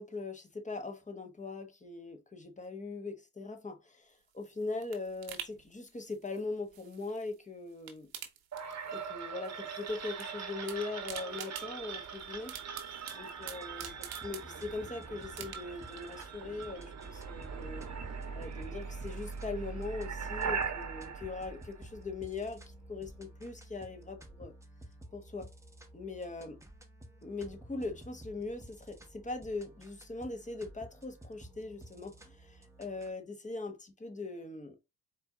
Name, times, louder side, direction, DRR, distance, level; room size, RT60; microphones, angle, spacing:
voice 1, 0.0-8.1 8.9-12.5 13.1-17.9 18.3-24.5 25.1-25.5 25.9-26.6 27.2-34.8, left 3 dB, 20° left, 1.2 m, -41 dB
sound 1, 4.1-7.4 7.7-9.2 9.4-10.3 10.5-14.9 15.3-15.9 16.3-16.4, right 9 dB, 70° right, 1.1 m, -47 dB
sound 2, 8.5-22.4, right 6 dB, 40° right, 1.1 m, -41 dB
sound 3, 13.4-33.1, right 1 dB, 5° right, 1.1 m, -53 dB
4.4 x 2.7 x 3.6 m
supercardioid pair, 60°, 39 cm